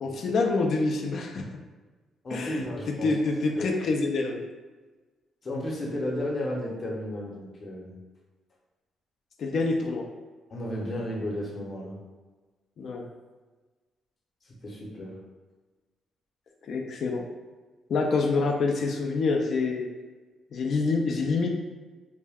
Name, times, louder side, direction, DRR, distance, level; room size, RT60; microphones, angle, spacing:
voice 1, 0.0-1.5 2.3-2.6 3.0-4.4 9.4-10.0 12.8-13.1 16.7-17.3 17.9-19.9 20.5-21.5, left 3 dB, 60° left, 1 dB, 0.3 m, -26 dB
voice 2, 2.2-3.1 3.5-3.8 5.4-7.9 10.5-12.0 14.4-15.2, left 1 dB, 40° left, -2 dB, 0.7 m, -33 dB
2.3 x 2.1 x 3.4 m, 1.3 s
cardioid pair, 90°, 0 cm